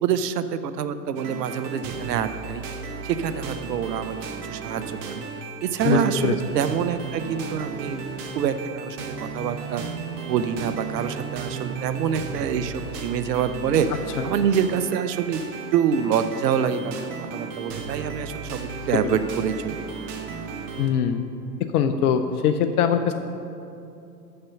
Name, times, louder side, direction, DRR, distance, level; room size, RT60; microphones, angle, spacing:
voice 1, 0.0-2.7 3.0-4.2 4.5-5.3 5.6-8.1 8.3-9.8 10.3-15.4 15.7-19.8, right 8 dB, 80° right, 11 dB, 0.7 m, -26 dB
sound 1, 1.2-20.9, right 5 dB, 45° right, 1.1 m, -35 dB
voice 2, 5.8-6.3 14.2-14.3 19.0-19.2 20.8-21.2 21.7-23.1, left 8 dB, 65° left, 8 dB, 0.6 m, -22 dB
6.7 x 5.6 x 6.8 m, 2.7 s
hypercardioid pair, 100°, 48 cm